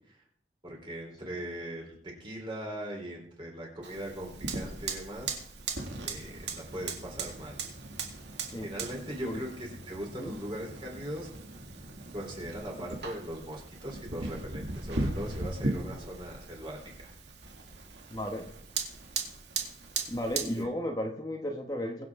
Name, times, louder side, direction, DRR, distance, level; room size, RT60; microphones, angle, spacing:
voice 1, 0.6-5.4 6.0-7.6 8.6-11.3 12.1-17.1 20.6-20.7, equal, 25° right, 0 dB, 3.6 m, -40 dB
Fire, 3.8-20.6, right 3 dB, 80° right, 2.1 m, -38 dB
voice 2, 18.1-18.5 20.1-22.0, equal, 20° left, 2 dB, 1.1 m, -34 dB
22.0 x 7.8 x 3.6 m, 0.65 s
head